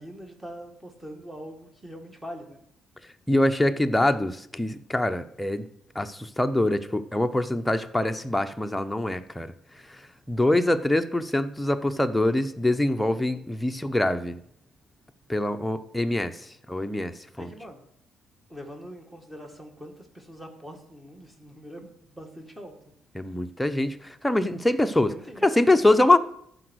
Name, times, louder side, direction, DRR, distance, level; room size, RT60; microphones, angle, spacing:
voice 1, 0.0-2.6 17.4-17.9 18.5-22.7 25.1-25.8, equal, 10° right, 4 dB, 2.0 m, -43 dB
voice 2, 3.3-5.6 5.9-9.5 10.3-14.4 15.3-16.3 16.7-17.5 23.2-25.1 25.4-26.2, left 1 dB, 5° left, 7 dB, 0.8 m, -24 dB
14.0 x 5.0 x 6.4 m, 0.74 s
cardioid pair, 90°, 0 cm